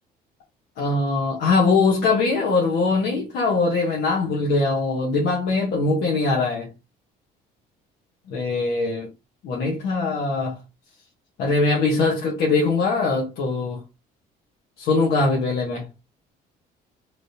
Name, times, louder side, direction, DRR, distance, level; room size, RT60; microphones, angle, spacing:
voice 1, 0.8-6.7 8.3-9.1 9.4-10.6 11.4-13.8 14.8-15.9, left 3 dB, 80° left, 1.3 m, -22 dB
3.5 x 3.0 x 2.8 m
cardioid pair, 110°, 17 cm